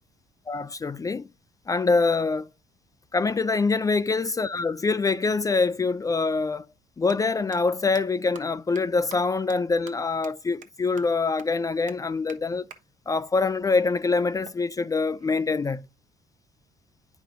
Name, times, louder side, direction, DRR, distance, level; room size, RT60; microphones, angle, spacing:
voice 1, 0.5-1.3 1.7-2.5 3.1-6.6 7.0-12.6 13.1-15.9, left 4 dB, 20° left, 0.3 m, -25 dB
sound 1, 6.9-7.1 7.5-7.6 7.9-8.0 8.3-8.4 8.8-8.9 9.1-9.2 9.5-9.6 9.9-10.0 10.2-10.3 10.6-10.7 11.0-11.1 11.4-11.5 11.9-12.0 12.3-12.4 12.7-12.8 14.4-15.5, right 7 dB, 50° right, 1.1 m, -46 dB
9.2 x 5.0 x 2.6 m
cardioid pair, 110°, 17 cm